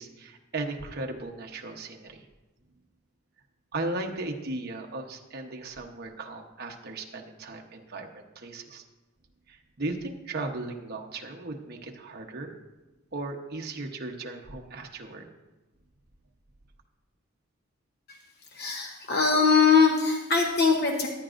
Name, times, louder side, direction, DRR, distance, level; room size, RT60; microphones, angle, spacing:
voice 1, 0.0-2.2 3.7-8.8 9.5-12.5 13.1-15.3, right 2 dB, 50° right, 2 dB, 1.0 m, -36 dB
voice 2, 18.5-21.1, left 5 dB, 50° left, 1 dB, 1.0 m, -22 dB
15.0 x 9.8 x 2.6 m, 1.1 s
head